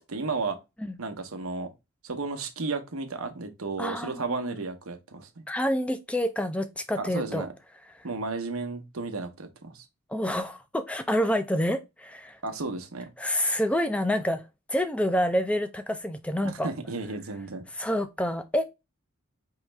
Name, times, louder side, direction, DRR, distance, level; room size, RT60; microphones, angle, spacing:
voice 1, 0.1-0.6 1.0-1.7 2.0-5.4 7.0-7.5 8.0-9.9 12.4-13.1 16.4-17.6, right 3 dB, 85° right, 0.9 m, -33 dB
voice 2, 3.8-4.6 5.5-7.4 10.1-12.4 13.2-14.4 14.7-16.7 17.8-18.6, equal, 5° left, 0.4 m, -28 dB
4.8 x 3.1 x 3.3 m
head